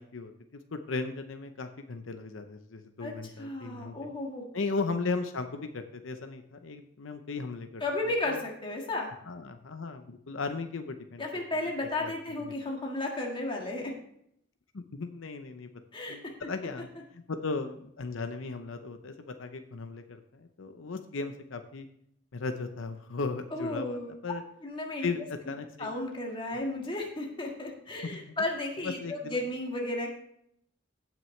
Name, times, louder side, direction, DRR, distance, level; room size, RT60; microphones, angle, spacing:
voice 1, 0.0-4.1 4.5-8.4 9.3-11.6 12.0-12.1 12.4-12.5 14.7-15.7 16.1-21.9 22.3-24.4 25.0-25.9 28.0-28.2 28.8-29.4, left 4 dB, 80° left, 7 dB, 0.7 m, -37 dB
voice 2, 3.4-4.4 7.8-9.1 11.2-13.9 15.9-16.2 23.5-24.1 24.6-25.1 25.8-30.1, left 2 dB, 25° left, 0 dB, 1.7 m, -33 dB
16.0 x 6.0 x 3.2 m, 0.71 s
head